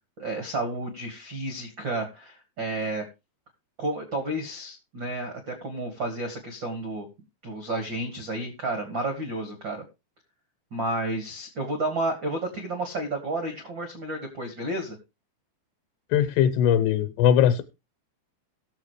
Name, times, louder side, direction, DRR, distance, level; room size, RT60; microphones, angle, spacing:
voice 1, 0.2-3.1 3.8-7.1 7.4-9.8 10.7-15.0, right 2 dB, 75° right, 6 dB, 1.0 m, -31 dB
voice 2, 16.1-17.6, left 9 dB, 80° left, 11 dB, 2.7 m, -20 dB
18.5 x 7.2 x 3.1 m, 0.25 s
omnidirectional pair, 5.0 m